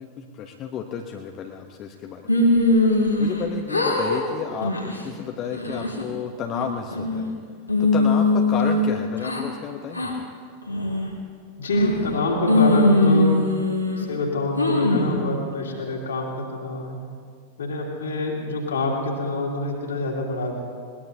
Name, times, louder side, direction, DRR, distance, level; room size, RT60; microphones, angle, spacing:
voice 1, 0.0-2.5 3.2-4.7 5.0-7.3 7.8-10.3, left 7 dB, 35° left, 3 dB, 0.9 m, -32 dB
sound 1, 2.3-3.4 3.7-4.2 4.6-5.0 5.5-6.0 6.5-7.3 7.7-9.4 9.9-10.1 10.7-11.1 11.7-12.2 12.5-14.1 14.6-15.2, left 2 dB, 85° left, 2.2 m, -21 dB
voice 2, 11.6-13.4 14.0-17.0 17.6-20.5, left 2 dB, 70° left, -1 dB, 2.9 m, -26 dB
21.0 x 20.0 x 2.8 m, 2.1 s
figure-of-eight pair, 90°, 0 cm